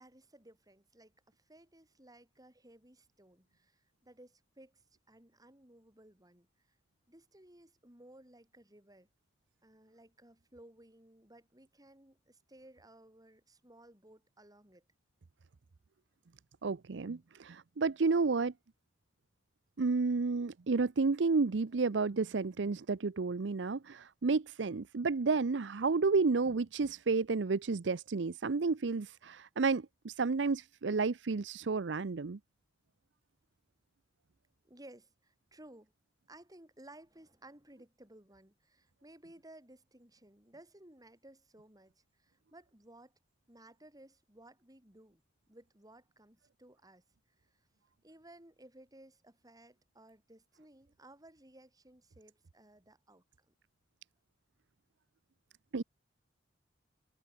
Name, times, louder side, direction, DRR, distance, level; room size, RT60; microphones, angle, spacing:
voice 1, 0.0-6.5 7.1-9.1 9.6-14.8 34.6-35.9 36.3-43.1 43.5-45.2 45.5-47.0 47.4-47.7 48.0-53.5, right 1 dB, 20° right, 6.3 m, -58 dB
voice 2, 16.6-18.5 19.8-32.4 55.7-55.8, right 4 dB, 70° right, 0.6 m, -31 dB
head